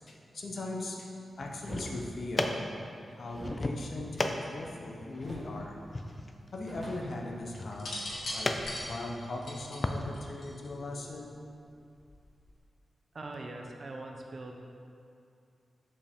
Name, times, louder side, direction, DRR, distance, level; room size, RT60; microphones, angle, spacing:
voice 1, 0.1-1.1 1.4-2.6 3.1-5.8 6.5-11.3, left 2 dB, 60° left, 0 dB, 0.8 m, -39 dB
sound 1, 1.5-10.0, left 2 dB, 25° left, 0.4 m, -37 dB
sound 2, 1.6-1.9 3.3-4.8 5.2-5.6 5.9-6.0 6.3-7.9, right 1 dB, 25° right, 1.6 m, -45 dB
sound 3, 7.7-10.9 12.0-12.3, left 1 dB, 80° left, 1.2 m, -39 dB
voice 2, 13.1-14.6, right 2 dB, 45° right, 2 dB, 0.6 m, -42 dB
6.8 x 5.3 x 3.6 m, 2.5 s
wide cardioid pair, 120°, 0 cm